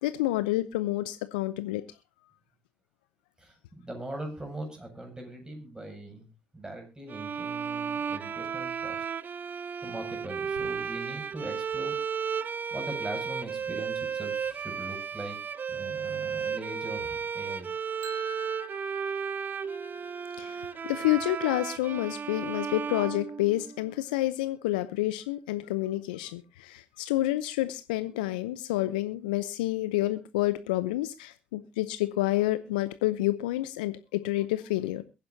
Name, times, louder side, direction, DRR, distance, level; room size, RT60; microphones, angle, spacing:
voice 1, 0.0-1.8 20.4-35.0, left 16 dB, 80° left, 13 dB, 0.7 m, -29 dB
voice 2, 3.4-6.3 6.5-9.1 9.8-12.0 12.7-15.4 15.6-17.7, right 1 dB, 15° right, 4 dB, 7.1 m, -41 dB
sound 1, 7.1-23.9, right 6 dB, 40° right, 0.8 m, -34 dB
sound 2, 18.0-23.9, left 1 dB, 65° right, 2.3 m, -49 dB
22.5 x 10.5 x 2.7 m, 0.29 s
hypercardioid pair, 50°, 5 cm